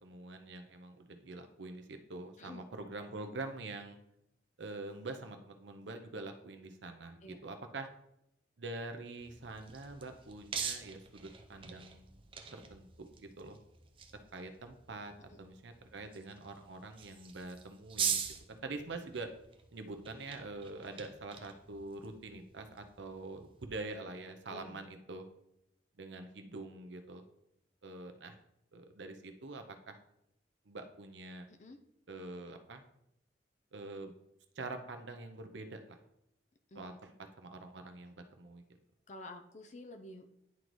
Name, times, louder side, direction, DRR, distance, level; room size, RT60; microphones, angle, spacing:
voice 1, 0.0-4.0 4.6-7.9 8.6-12.2 12.5-13.6 14.1-18.2 18.5-19.3 19.7-25.2 26.0-27.2 27.8-28.4 28.7-30.0 30.7-31.4 32.1-32.8 33.7-34.1 34.6-36.0 36.7-37.1 37.4-38.6, right 2 dB, 75° right, 6 dB, 0.7 m, -45 dB
sound 1, 9.2-23.7, right 7 dB, 30° right, 0.5 m, -44 dB
voice 2, 24.5-24.8 31.6-31.8 36.7-36.9 39.1-40.4, left 2 dB, 40° left, 5 dB, 0.6 m, -50 dB
10.5 x 3.9 x 3.1 m, 0.81 s
head